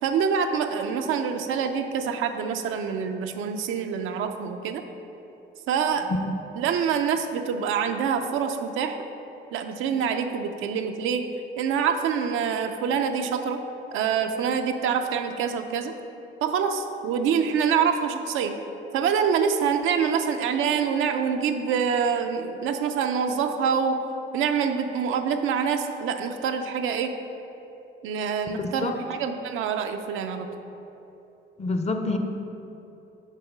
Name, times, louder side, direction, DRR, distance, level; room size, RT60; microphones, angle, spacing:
voice 1, 0.0-4.8 5.7-6.1 6.6-9.0 9.5-11.3 11.6-13.6 13.9-15.9 16.4-18.5 18.9-24.0 24.3-27.1 28.0-30.5, right 7 dB, 85° right, 6 dB, 0.5 m, -26 dB
voice 2, 28.5-29.0 31.6-32.2, left 2 dB, 35° left, 6 dB, 0.6 m, -28 dB
6.7 x 3.5 x 6.0 m, 3.0 s
cardioid pair, 90°, 20 cm